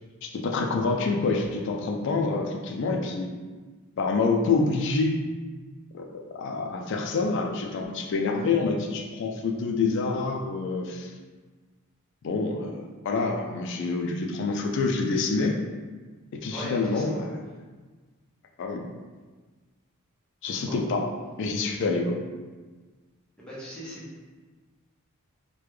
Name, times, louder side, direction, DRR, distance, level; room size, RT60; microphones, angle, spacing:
voice 1, 0.2-3.3 4.0-5.2 5.9-11.1 12.2-15.5 16.3-17.3 18.6-18.9 20.4-21.1 21.4-22.2, left 3 dB, 55° left, 1 dB, 0.3 m, -27 dB
voice 2, 16.5-17.2 20.7-20.8 23.4-24.0, equal, 5° left, -9 dB, 0.8 m, -38 dB
3.3 x 2.2 x 3.2 m, 1.4 s
head